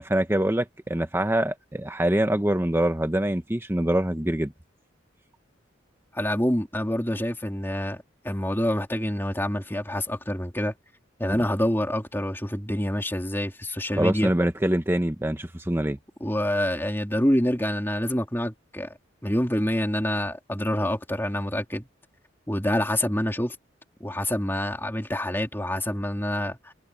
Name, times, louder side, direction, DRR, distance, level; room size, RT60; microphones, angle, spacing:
voice 1, 0.0-4.5 13.9-16.0, right 1 dB, 10° right, 0.9 m, -24 dB
voice 2, 6.1-10.7 11.2-14.3 16.2-18.9 19.2-21.9 22.5-23.6 24.0-26.7, left 1 dB, 10° left, 3.0 m, -27 dB
head